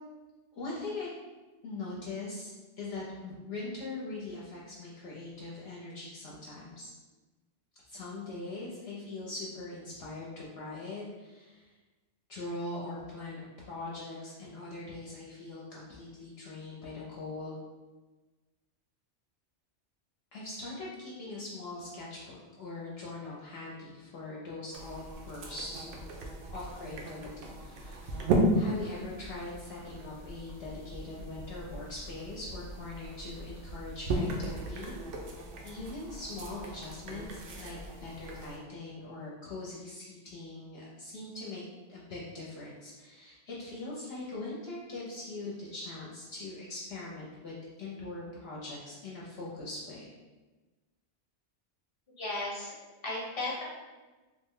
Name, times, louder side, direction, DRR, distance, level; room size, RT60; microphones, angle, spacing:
voice 1, 0.5-1.1 1.6-2.5 2.8-6.9 7.9-11.7 12.3-17.6 20.3-25.9 26.5-35.0 35.6-41.6 41.9-50.1, left 2 dB, 65° left, -5 dB, 0.8 m, -41 dB
sound 1, 24.7-38.6, right 1 dB, 80° right, 0.9 m, -36 dB
voice 2, 52.2-52.7 53.0-53.6, left 2 dB, 25° left, -5 dB, 0.8 m, -34 dB
3.2 x 2.1 x 3.5 m, 1.2 s
omnidirectional pair, 1.2 m